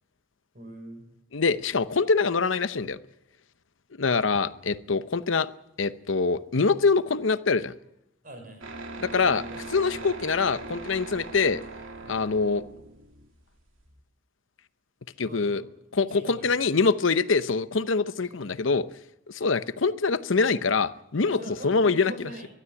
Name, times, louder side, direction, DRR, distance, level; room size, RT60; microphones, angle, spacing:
voice 1, 0.5-1.0 8.2-8.6 9.2-9.6 9.9-10.1 12.0-12.2 15.2-15.7 16.1-16.5 18.3-18.5 21.2-22.5, right 1 dB, 45° right, 5 dB, 6.1 m, -44 dB
voice 2, 1.3-3.0 4.0-5.5 5.8-7.7 9.0-9.4 9.7-11.6 12.1-12.6 15.2-15.6 15.9-18.9 19.3-22.1, left 4 dB, 75° left, 14 dB, 0.8 m, -24 dB
sound 1, 8.6-14.0, right 2 dB, 85° right, 2.5 m, -40 dB
22.5 x 12.5 x 9.9 m, 0.81 s
head